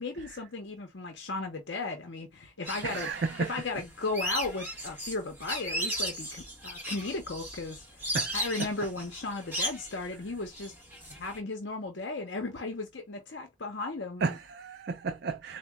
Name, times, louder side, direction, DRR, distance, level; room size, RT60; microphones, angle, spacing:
voice 1, 0.0-3.1 3.4-10.7 11.2-14.4, left 3 dB, 60° left, 0.7 m, -36 dB
sound 1, 2.7-11.4, equal, 10° right, 1.4 m, -36 dB
voice 2, 2.8-3.5 8.1-8.7 14.2-15.6, right 4 dB, 50° right, 0.4 m, -33 dB
4.0 x 2.2 x 3.5 m
head